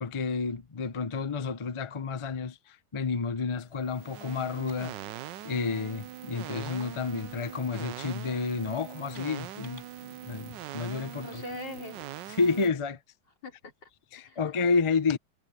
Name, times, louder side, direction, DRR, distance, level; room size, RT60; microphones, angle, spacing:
voice 1, 0.0-5.0 5.4-11.4 12.4-13.0 14.1-15.2, left 4 dB, 30° left, 0.6 m, -30 dB
sound 1, 3.8-12.7, right 12 dB, 80° right, 1.4 m, -42 dB
sound 2, 4.7-10.5, right 1 dB, 40° right, 5.8 m, -59 dB
voice 2, 11.2-12.1 13.4-13.9 14.1-14.8, left 2 dB, 85° left, 4.6 m, -43 dB
omnidirectional pair, 1.9 m